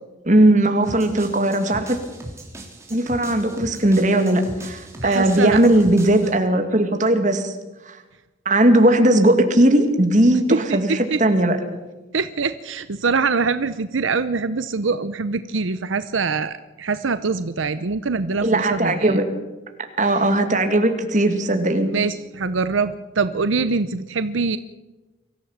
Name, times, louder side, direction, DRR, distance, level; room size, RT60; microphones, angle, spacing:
voice 1, 0.3-2.0 2.9-7.5 7.9-8.0 8.5-11.6 18.4-19.3 20.0-21.9, right 1 dB, 40° right, 6 dB, 2.3 m, -18 dB
sound 1, 0.8-6.3, right 1 dB, 15° right, 3.3 m, -38 dB
voice 2, 5.0-5.6 10.5-10.8 11.1-11.2 12.1-19.2 21.9-24.6, right 4 dB, 80° right, 12 dB, 0.8 m, -24 dB
24.0 x 15.0 x 7.3 m, 1.1 s
head